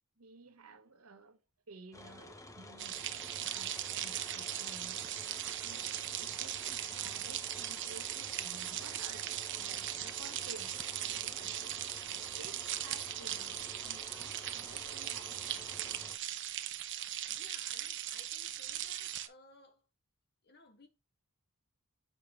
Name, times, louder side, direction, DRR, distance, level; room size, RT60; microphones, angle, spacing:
voice 1, 0.2-1.4 1.7-3.0 3.4-5.9 6.2-11.8 12.4-16.3, right 3 dB, 85° right, 1.1 m, -55 dB
sound 1, 1.9-16.2, left 1 dB, 15° left, 0.8 m, -51 dB
sound 2, 2.8-19.3, right 12 dB, 55° right, 0.7 m, -39 dB
voice 2, 17.3-19.8 20.4-20.9, left 3 dB, 50° left, 1.8 m, -59 dB
7.4 x 5.1 x 3.0 m
head